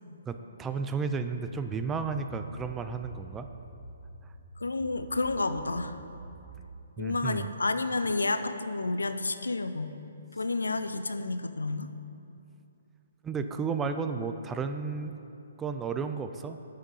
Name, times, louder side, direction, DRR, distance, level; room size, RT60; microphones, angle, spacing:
voice 1, 0.3-3.5 7.0-7.5 13.2-15.3 15.6-16.6, right 5 dB, 15° right, 8 dB, 0.3 m, -33 dB
sound 1, 2.9-6.7, right 2 dB, 5° left, 1.3 m, -48 dB
voice 2, 4.6-6.0 7.0-9.9 10.3-11.9, left 3 dB, 85° left, 10 dB, 0.4 m, -30 dB
6.4 x 6.0 x 5.4 m, 2.8 s
figure-of-eight pair, 135°, 0 cm